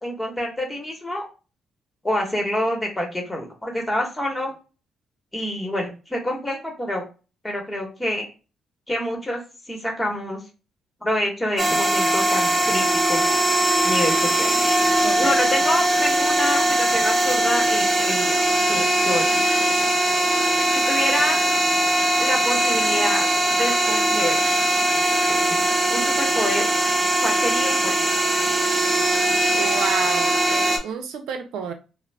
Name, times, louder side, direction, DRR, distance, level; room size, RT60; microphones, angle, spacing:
voice 1, 0.0-1.3 2.0-4.5 5.3-7.0 7.4-8.3 8.9-9.4 9.7-10.4 11.0-13.2 13.8-14.5 15.2-18.4 18.6-19.3 20.7-21.5 22.2-24.4 25.9-26.6 27.2-27.9, left 1 dB, 15° left, 1.0 m, -27 dB
sound 1, 11.6-30.8, right 1 dB, 20° right, 0.7 m, -20 dB
voice 2, 15.0-15.3 29.6-31.7, right 7 dB, 85° right, 0.5 m, -30 dB
2.4 x 2.0 x 3.2 m
cardioid pair, 90°, 0 cm